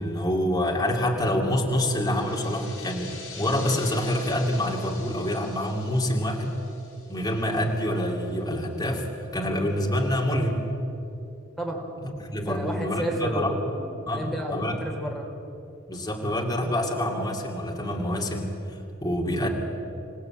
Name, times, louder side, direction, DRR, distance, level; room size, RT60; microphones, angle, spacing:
voice 1, 0.0-6.5 7.1-9.1 9.3-10.6 12.2-13.5 14.1-14.8 15.9-19.5, left 1 dB, 20° left, -1 dB, 2.7 m, -26 dB
sound 1, 1.7-8.0, left 4 dB, 70° left, 5.1 m, -45 dB
voice 2, 11.6-11.9 12.3-15.3 16.6-16.7, equal, ahead, 0 dB, 3.2 m, -32 dB
27.5 x 17.0 x 9.0 m, 2.9 s
head